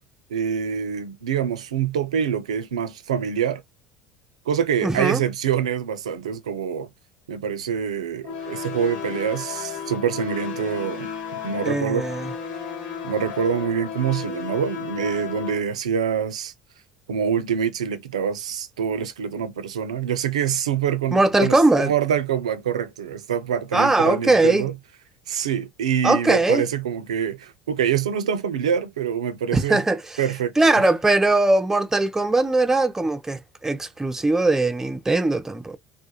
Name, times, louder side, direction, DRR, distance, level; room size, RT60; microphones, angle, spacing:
voice 1, 0.3-3.6 4.5-6.9 7.3-11.1 11.4-12.1 13.0-16.5 17.1-24.7 25.3-29.8 30.2-30.8, right 8 dB, 85° right, 0.3 m, -25 dB
voice 2, 4.8-5.2 11.6-12.3 21.1-21.9 23.7-24.7 26.0-26.7 29.5-30.2 30.6-35.8, right 2 dB, 10° right, 0.5 m, -20 dB
sound 1, 8.2-15.6, left 6 dB, 65° left, 1.0 m, -33 dB
2.3 x 2.0 x 2.7 m
hypercardioid pair, 70°, 3 cm